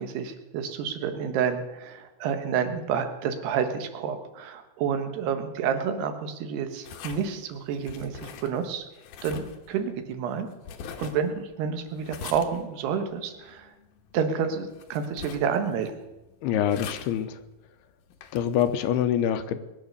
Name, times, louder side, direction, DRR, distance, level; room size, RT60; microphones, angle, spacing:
voice 1, 0.0-8.9 9.2-10.5 11.0-13.7 14.1-15.9, right 7 dB, 90° right, 7 dB, 3.4 m, -29 dB
sound 1, 6.8-19.0, left 7 dB, 70° left, 2.2 m, -45 dB
voice 2, 16.4-17.4 18.3-19.6, left 10 dB, 85° left, 10 dB, 2.9 m, -25 dB
21.0 x 9.2 x 6.8 m, 1.0 s
omnidirectional pair, 4.5 m